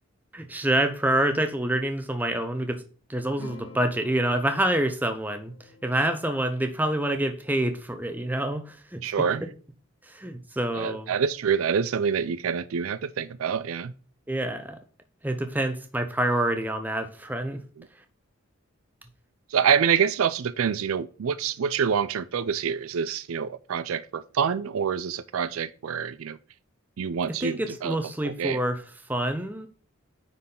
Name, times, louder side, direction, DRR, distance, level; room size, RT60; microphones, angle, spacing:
voice 1, 0.3-2.8 3.1-5.5 5.8-9.1 9.4-9.5 10.0-11.1 14.3-14.8 15.2-17.6 27.4-29.7, right 1 dB, 10° right, 0.6 m, -27 dB
sound 1, 3.4-8.3, left 3 dB, 80° left, 1.4 m, -50 dB
voice 2, 9.0-9.4 10.7-13.9 17.8-17.9 19.5-26.4 27.0-28.0 28.2-28.6, right 7 dB, 75° right, 0.4 m, -26 dB
9.4 x 4.1 x 3.8 m
head